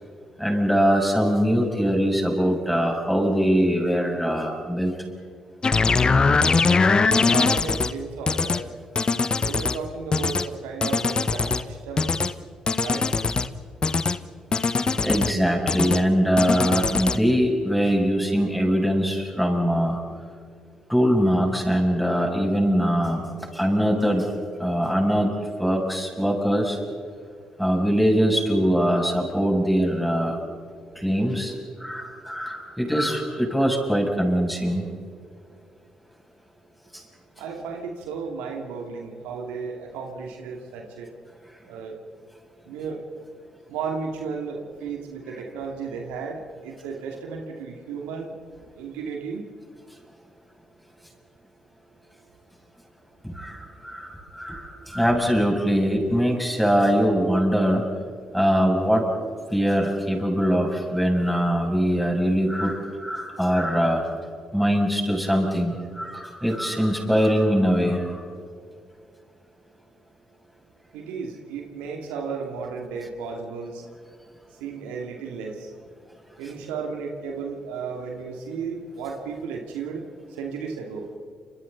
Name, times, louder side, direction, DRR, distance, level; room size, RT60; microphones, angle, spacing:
voice 1, 0.4-4.9 15.0-20.0 20.9-23.2 23.5-24.3 24.6-26.8 27.6-30.4 31.0-31.5 31.8-34.9 53.2-57.9 58.3-59.1 59.5-64.0 64.5-68.1, equal, ahead, 0 dB, 7.0 m, -22 dB
sound 1, 5.6-7.9 8.3-8.6 9.0-9.8 10.1-10.5 10.8-11.6 12.0-12.3 12.7-13.5 13.8-14.2 14.5-15.3 15.7-16.0 16.4-17.2, left 4 dB, 35° left, 1.2 m, -22 dB
voice 2, 6.2-8.6 9.4-12.2 12.8-13.1 37.4-41.1 41.7-42.0 42.7-43.0 43.7-48.3 48.8-49.5 70.9-73.8 74.6-75.7 76.4-80.0 80.3-81.1, right 5 dB, 75° right, 2 dB, 2.5 m, -34 dB
30.0 x 27.0 x 4.1 m, 2.2 s
hypercardioid pair, 45°, 2 cm